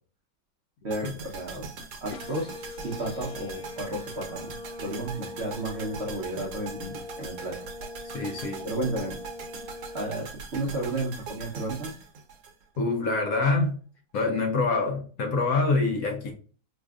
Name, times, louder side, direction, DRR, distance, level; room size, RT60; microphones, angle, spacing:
voice 1, 0.8-1.7 2.0-2.5 2.8-4.6 4.8-7.7 8.6-9.2 9.9-12.0, right 1 dB, 55° right, 0.8 m, -33 dB
sound 1, 0.9-13.1 13.4-13.5, right 5 dB, 70° right, 1.3 m, -41 dB
sound 2, 2.1-10.1, left 3 dB, 85° left, 1.2 m, -42 dB
voice 2, 8.1-8.6 12.8-13.8 14.1-16.3, left 3 dB, 65° left, 1.0 m, -25 dB
4.9 x 2.5 x 2.3 m
omnidirectional pair, 1.9 m